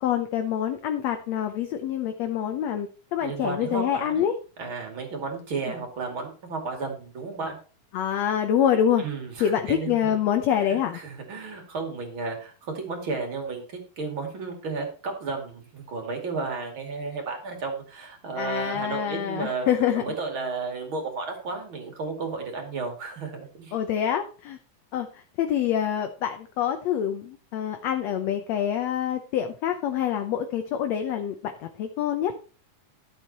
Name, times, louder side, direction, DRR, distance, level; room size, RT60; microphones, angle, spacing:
voice 1, 0.0-4.3 7.9-9.0 9.4-11.0 18.4-20.0 23.7-24.6 24.9-25.1 25.4-31.4 31.8-32.3, left 9 dB, 70° left, 6 dB, 1.8 m, -26 dB
voice 2, 3.2-4.3 4.6-7.6 9.0-10.2 10.5-19.7 19.9-23.8, right 4 dB, 40° right, 4 dB, 3.0 m, -33 dB
13.0 x 8.0 x 4.2 m, 0.36 s
omnidirectional pair, 3.8 m